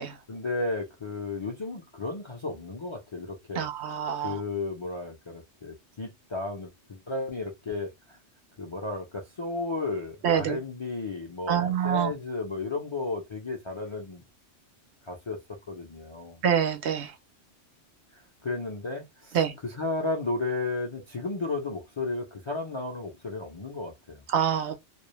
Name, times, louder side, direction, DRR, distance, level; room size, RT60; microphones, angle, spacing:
voice 1, 0.3-3.7 4.2-8.2 8.6-14.2 15.0-15.4 15.7-16.4 18.4-19.4 19.6-24.2, left 3 dB, 40° left, 0.4 m, -33 dB
voice 2, 3.6-4.4 10.2-10.6 11.5-12.1 16.4-17.1 19.3-19.5 24.3-24.8, right 8 dB, 70° right, 0.8 m, -26 dB
2.4 x 2.0 x 3.0 m
omnidirectional pair, 1.3 m